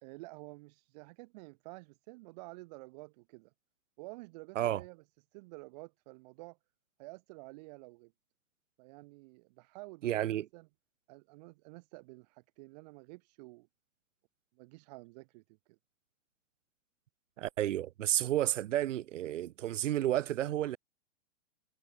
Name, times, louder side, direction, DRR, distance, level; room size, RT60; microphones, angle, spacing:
voice 1, 0.0-3.5 4.0-5.0 5.3-6.6 7.0-8.1 8.8-10.7 11.1-13.7 14.6-15.8, right 25 dB, 30° right, 1.7 m, -50 dB
voice 2, 10.0-10.5 17.4-20.8, right 13 dB, 70° right, 0.7 m, -31 dB
hypercardioid pair, 155°, 39 cm